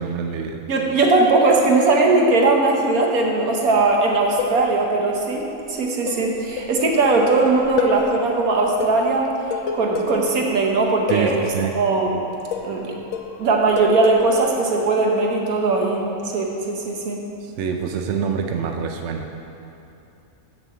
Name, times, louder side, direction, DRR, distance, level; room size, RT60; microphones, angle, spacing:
voice 1, 0.0-0.6 11.1-11.8 17.4-19.3, right 6 dB, 65° right, 4 dB, 0.9 m, -26 dB
voice 2, 0.7-9.3 9.7-12.2 12.6-12.9 13.4-17.2, right 3 dB, 80° right, 0 dB, 1.5 m, -19 dB
sound 1, 4.1-5.0 6.1-8.1 8.5-8.6 8.8-10.3 11.1-11.5 12.3-12.8 13.1-14.4, left 5 dB, 65° left, 1.0 m, -28 dB
6.8 x 6.3 x 7.3 m, 2.7 s
omnidirectional pair, 1.5 m